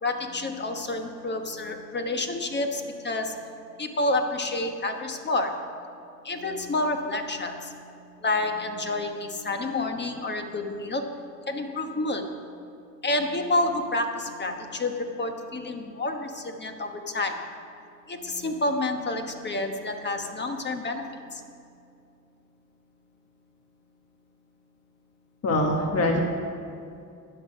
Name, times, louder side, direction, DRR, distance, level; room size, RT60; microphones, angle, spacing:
voice 1, 0.0-3.5 3.8-5.6 6.2-7.9 8.2-11.1 11.5-12.3 13.0-17.4 18.1-21.5, left 2 dB, 35° left, 5 dB, 1.2 m, -29 dB
voice 2, 25.4-26.2, left 1 dB, 55° left, 2 dB, 1.3 m, -23 dB
13.0 x 9.1 x 5.5 m, 2.5 s
cardioid pair, 90°, 30 cm